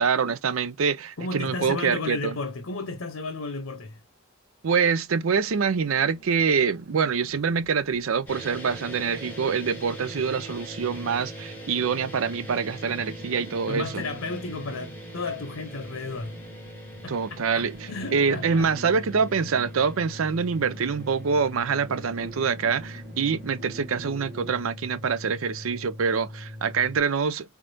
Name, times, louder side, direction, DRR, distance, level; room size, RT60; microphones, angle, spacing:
voice 1, 0.0-2.4 4.6-13.9 17.1-17.8 18.1-27.6, right 6 dB, 80° right, 0.5 m, -25 dB
voice 2, 1.2-4.0 13.7-16.4 17.0-18.7, left 3 dB, 85° left, 0.8 m, -33 dB
sound 1, 5.1-24.6, right 2 dB, 60° right, 1.7 m, -48 dB
sound 2, 8.3-27.0, equal, 10° left, 1.7 m, -41 dB
3.7 x 3.5 x 2.6 m
head